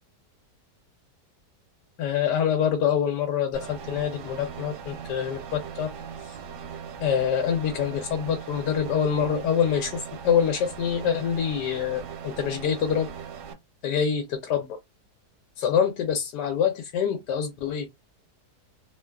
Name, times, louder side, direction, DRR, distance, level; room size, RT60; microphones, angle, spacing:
voice 1, 2.0-5.9 6.2-6.3 7.0-13.1 13.8-14.7 15.6-17.9, left 8 dB, 85° left, 1.2 m, -25 dB
sound 1, 3.5-13.5, right 7 dB, 85° right, 1.2 m, -39 dB
3.0 x 2.2 x 2.2 m
omnidirectional pair, 1.8 m